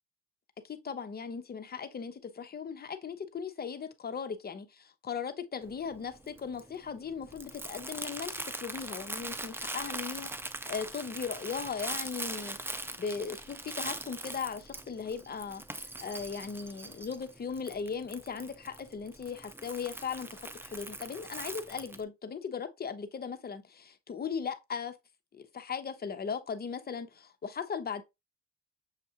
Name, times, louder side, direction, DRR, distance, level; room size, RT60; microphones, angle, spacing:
voice 1, 0.6-8.3 8.6-10.3 10.7-12.6 13.0-25.0 25.3-28.0, left 6 dB, 30° left, 0.7 m, -38 dB
Crumpling crinkling, 5.6-22.0, right 2 dB, 10° right, 0.4 m, -41 dB
6.3 x 2.4 x 2.8 m
cardioid pair, 90°, 30 cm